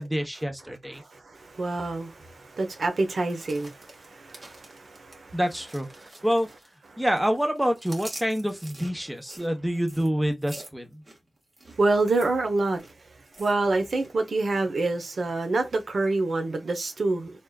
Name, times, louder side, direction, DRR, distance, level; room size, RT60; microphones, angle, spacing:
voice 1, 0.0-1.0 5.3-5.9 6.2-6.5 7.0-11.0, equal, 5° right, 1.0 m, -27 dB
voice 2, 0.9-5.4 6.0-6.1 6.9-7.0 11.8-17.3, right 2 dB, 65° right, 0.8 m, -27 dB
sound 1, 3.1-6.9 7.2-14.1 14.4-14.7 15.1-15.8 16.3-16.4, right 1 dB, 40° right, 1.5 m, -47 dB
4.0 x 3.5 x 2.3 m
wide cardioid pair, 120°, 0 cm